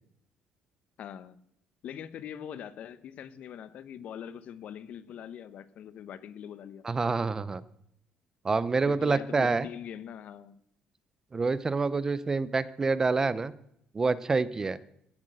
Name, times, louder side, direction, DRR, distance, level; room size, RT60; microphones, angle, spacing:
voice 1, 1.0-1.4 1.8-6.8 8.8-10.5, left 9 dB, 55° left, 14 dB, 0.9 m, -42 dB
voice 2, 6.8-7.6 8.4-9.7 11.3-13.5 13.9-14.8, right 4 dB, 20° right, 16 dB, 0.5 m, -27 dB
16.0 x 8.1 x 7.7 m, 0.75 s
cardioid pair, 140°, 3 cm